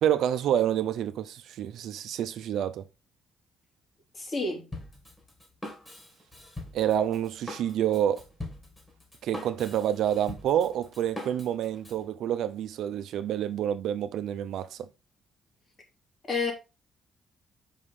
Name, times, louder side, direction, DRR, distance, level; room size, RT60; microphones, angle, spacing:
voice 1, 0.0-2.8 6.7-8.2 9.2-14.9, right 10 dB, 80° right, 0.6 m, -28 dB
voice 2, 4.1-4.7 16.3-16.5, left 3 dB, 40° left, 2.5 m, -29 dB
Drum kit, 4.7-12.0, left 1 dB, 20° left, 2.3 m, -42 dB
5.4 x 5.0 x 3.6 m
cardioid pair, 90°, 0 cm